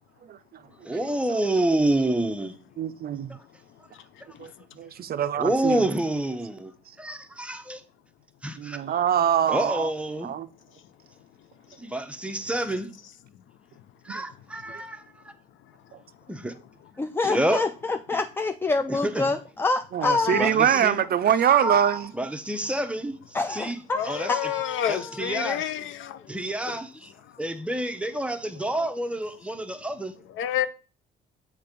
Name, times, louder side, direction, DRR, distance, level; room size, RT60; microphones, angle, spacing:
voice 1, 0.8-2.5 3.3-3.4 5.4-6.7 7.0-7.8 8.4-8.8 9.5-10.3 11.8-12.9 14.0-15.3 16.3-16.5 17.2-17.7 18.9-19.3 20.3-21.0 21.4-23.2 23.5-24.5 24.9-25.6 26.3-27.1 27.4-30.1, right 1 dB, 5° right, 0.8 m, -28 dB
voice 2, 2.8-3.4 4.4-4.5 4.8-5.8 8.6-9.9 10.2-10.5 14.1-14.2 19.9-22.1, right 9 dB, 50° right, 0.4 m, -23 dB
voice 3, 17.0-20.6 23.3-25.1 25.4-25.5, left 3 dB, 10° left, 0.3 m, -27 dB
voice 4, 23.9-26.2 26.6-26.8 30.3-30.7, left 10 dB, 80° left, 0.6 m, -29 dB
6.8 x 3.3 x 5.2 m
cardioid pair, 90°, 20 cm